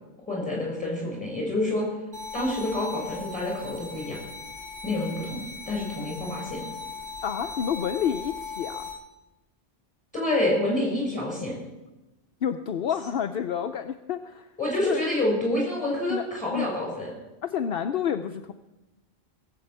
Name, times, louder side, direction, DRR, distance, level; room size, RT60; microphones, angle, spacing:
voice 1, 0.3-1.9 2.3-4.2 4.8-6.7 10.1-11.5 14.6-17.1, left 1 dB, 5° left, -3 dB, 7.2 m, -28 dB
sound 1, 2.1-8.9, left 4 dB, 45° right, 4.2 m, -39 dB
voice 2, 7.2-8.9 12.4-14.5 14.8-15.0 16.1-16.7 17.4-18.5, left 8 dB, 65° left, 7 dB, 0.8 m, -29 dB
17.5 x 7.8 x 8.1 m, 1.0 s
omnidirectional pair, 1.1 m